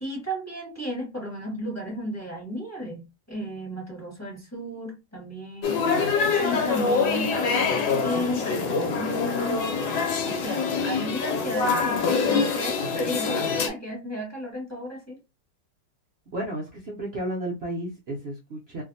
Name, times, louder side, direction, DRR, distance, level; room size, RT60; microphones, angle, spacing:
voice 1, 0.0-5.8 6.4-9.7 10.2-15.2, equal, 10° left, -2 dB, 1.0 m, -33 dB
sound 1, 5.6-13.7, left 5 dB, 85° left, 1.3 m, -25 dB
voice 2, 16.3-18.8, right 1 dB, 80° right, -2 dB, 0.5 m, -32 dB
2.7 x 2.6 x 2.6 m, 0.25 s
omnidirectional pair, 2.0 m